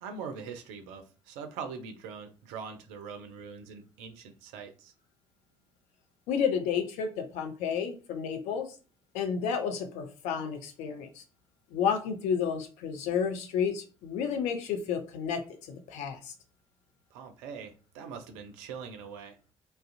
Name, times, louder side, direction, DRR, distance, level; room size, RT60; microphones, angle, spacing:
voice 1, 0.0-4.9 17.1-19.4, right 6 dB, 65° right, 0.4 m, -42 dB
voice 2, 6.3-8.7 9.1-11.2 11.7-16.3, left 7 dB, 60° left, 0.5 m, -31 dB
2.4 x 2.0 x 2.5 m
figure-of-eight pair, 45°, 14 cm